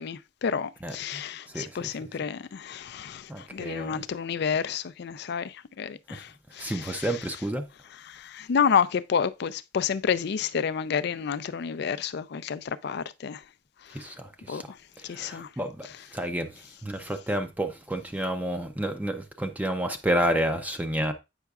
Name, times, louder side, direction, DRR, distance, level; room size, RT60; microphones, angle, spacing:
voice 1, 0.0-3.2 3.5-5.5 5.8-6.2 6.6-7.1 8.3-13.4 14.5-14.6 15.1-15.5, left 7 dB, 60° left, 0.4 m, -29 dB
voice 2, 0.8-1.2 1.5-1.9 3.3-4.0 6.6-7.7 13.9-14.7 15.1-16.5 16.8-21.1, right 1 dB, 10° right, 0.5 m, -30 dB
8.0 x 5.6 x 2.3 m
head